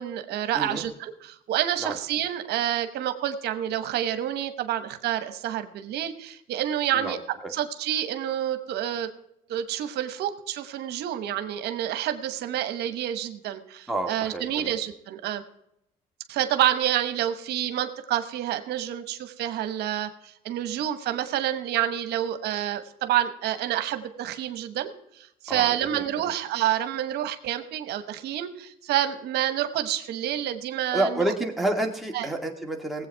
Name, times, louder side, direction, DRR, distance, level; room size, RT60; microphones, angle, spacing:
voice 1, 0.0-7.2 7.5-9.1 9.5-15.4 16.3-31.2 32.1-32.3, right 11 dB, 75° right, 10 dB, 1.1 m, -28 dB
voice 2, 13.9-14.7 25.5-26.0 30.9-33.1, right 1 dB, ahead, 1 dB, 2.1 m, -29 dB
18.5 x 8.1 x 4.6 m, 0.79 s
cardioid pair, 110°, 17 cm